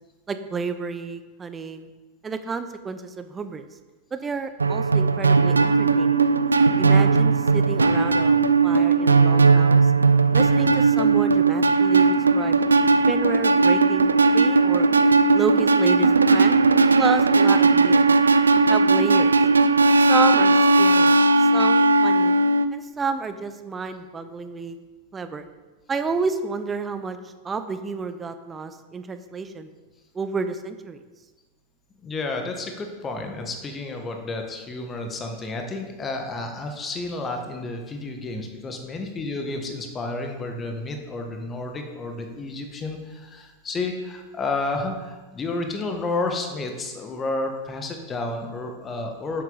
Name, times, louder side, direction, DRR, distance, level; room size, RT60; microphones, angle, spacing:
voice 1, 0.3-1.9 2.2-3.7 4.1-6.2 6.8-9.8 10.3-12.6 13.1-14.9 15.3-16.5 17.0-18.0 18.7-19.3 20.0-22.3 22.7-24.8 25.1-25.4 25.9-27.2 27.4-29.7 30.1-31.0, right 4 dB, 15° right, 9 dB, 0.7 m, -30 dB
sound 1, 4.6-22.7, right 3 dB, 75° right, 0.4 m, -18 dB
voice 2, 32.0-49.4, left 2 dB, 20° left, 4 dB, 1.5 m, -31 dB
11.0 x 7.7 x 4.0 m, 1.3 s
figure-of-eight pair, 90°, 0 cm